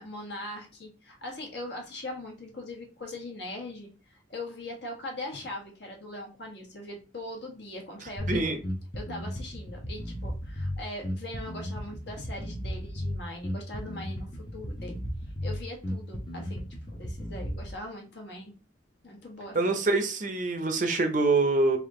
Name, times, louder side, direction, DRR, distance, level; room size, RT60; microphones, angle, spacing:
voice 1, 0.0-8.5 8.9-15.0 15.4-18.5 19.0-19.8, left 1 dB, 60° left, 1.2 m, -41 dB
Bass guitar, 8.2-17.8, equal, 25° left, 0.7 m, -35 dB
voice 2, 8.3-8.6 19.5-21.8, right 3 dB, 45° right, 0.6 m, -25 dB
3.5 x 2.4 x 3.6 m
head